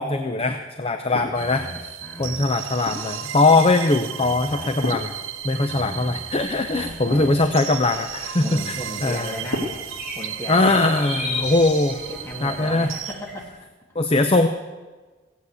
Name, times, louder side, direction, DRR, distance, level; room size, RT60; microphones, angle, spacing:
voice 1, 0.0-1.6 2.2-5.1 5.4-8.4 9.0-9.3 10.5-12.0 12.4-12.9 14.0-14.5, left 2 dB, 30° left, 7 dB, 0.6 m, -20 dB
sound 1, 1.1-1.7 2.3-3.2 3.8-4.1 4.8-6.0 6.3-6.5 6.9-8.2 9.4-11.2 11.5-11.8 12.9-13.1, left 1 dB, 85° left, 2.8 m, -35 dB
voice 2, 1.1-2.5 4.2-4.8 5.6-6.2 6.7-7.4 8.4-9.7 10.1-11.6 12.1-13.6, equal, 10° left, -1 dB, 2.3 m, -36 dB
sound 2, 1.4-13.1, right 10 dB, 85° right, 0.8 m, -35 dB
sound 3, 6.3-13.4, left 2 dB, 5° right, 6.5 m, -37 dB
16.0 x 8.2 x 8.3 m, 1.3 s
head